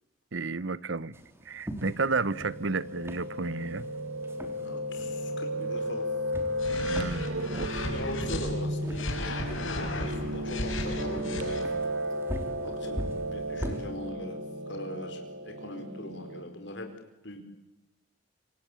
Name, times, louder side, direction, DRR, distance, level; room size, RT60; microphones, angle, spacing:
voice 1, 0.3-1.1 1.4-3.9 6.7-7.9, right 3 dB, 70° right, 0.9 m, -32 dB
sound 1, 1.1-13.9, equal, 10° right, 3.1 m, -43 dB
Piano, 2.0-16.4, equal, 85° right, 3.0 m, -34 dB
voice 2, 4.6-6.1 7.9-11.6 12.6-14.4 14.7-16.9 17.2-17.4, left 1 dB, 60° left, 4.5 m, -40 dB
sound 2, 6.6-8.5 8.9-11.6, left 2 dB, 80° left, 6.1 m, -35 dB
27.0 x 26.0 x 8.5 m
head